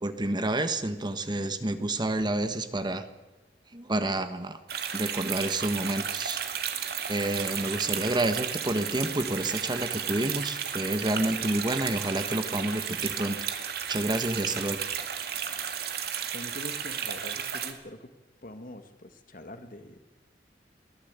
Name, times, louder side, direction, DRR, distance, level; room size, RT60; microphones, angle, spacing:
voice 1, 0.0-3.0 3.7-4.6 4.9-6.4 7.1-13.4 13.9-14.8, right 1 dB, 25° right, 9 dB, 1.3 m, -29 dB
sound 1, 4.7-17.7, right 8 dB, 60° right, 2.2 m, -33 dB
voice 2, 16.3-18.1 18.4-20.1, left 1 dB, 50° left, 8 dB, 1.8 m, -44 dB
22.5 x 16.0 x 8.2 m, 1.2 s
head